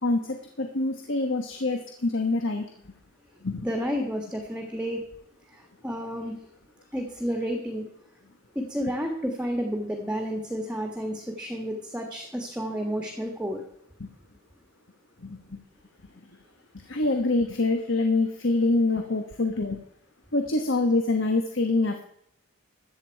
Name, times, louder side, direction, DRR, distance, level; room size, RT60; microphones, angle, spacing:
voice 1, 0.0-2.7 3.4-3.7 14.0-14.1 15.2-15.6 16.9-19.8 20.3-22.0, left 2 dB, 60° left, 5 dB, 1.3 m, -25 dB
voice 2, 3.6-5.0 5.5-6.3 6.9-7.9 8.5-13.6, equal, 5° right, 3 dB, 1.5 m, -31 dB
14.0 x 9.0 x 4.6 m, 0.75 s
head